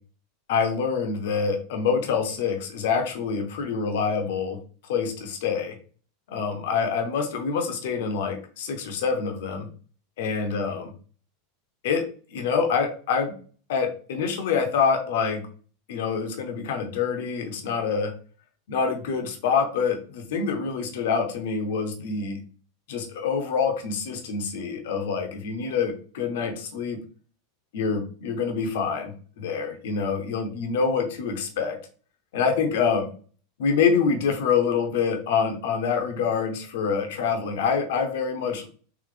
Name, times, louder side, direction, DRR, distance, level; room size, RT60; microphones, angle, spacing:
voice 1, 0.5-4.6 4.9-5.8 6.3-9.7 10.2-10.9 11.8-12.0 12.3-13.3 13.7-15.4 15.9-18.1 18.7-22.4 22.9-27.0 27.7-31.8 32.3-33.1 33.6-38.7, left 5 dB, 60° left, 5 dB, 0.8 m, -26 dB
4.0 x 2.8 x 3.3 m, 0.41 s
figure-of-eight pair, 85°, 0 cm